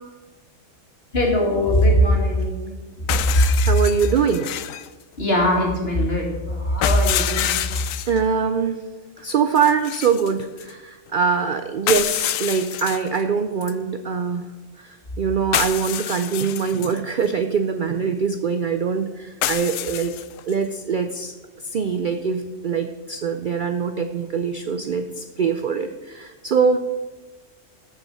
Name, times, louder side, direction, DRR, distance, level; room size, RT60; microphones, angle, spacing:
voice 1, 1.1-2.8 3.3-3.4 5.2-7.6, equal, 50° left, -1 dB, 2.6 m, -20 dB
sound 1, 3.1-4.9 6.8-8.2 9.5-10.7 11.9-13.2 13.6-13.7 15.5-17.0 19.4-20.5, left 11 dB, 85° left, 1.0 m, -27 dB
voice 2, 3.3-4.6 8.1-8.8 9.2-14.5 14.8-20.1 20.5-21.3 21.6-26.8, right 6 dB, 55° right, 8 dB, 0.5 m, -23 dB
14.0 x 5.8 x 5.6 m, 1.2 s
omnidirectional pair, 1.3 m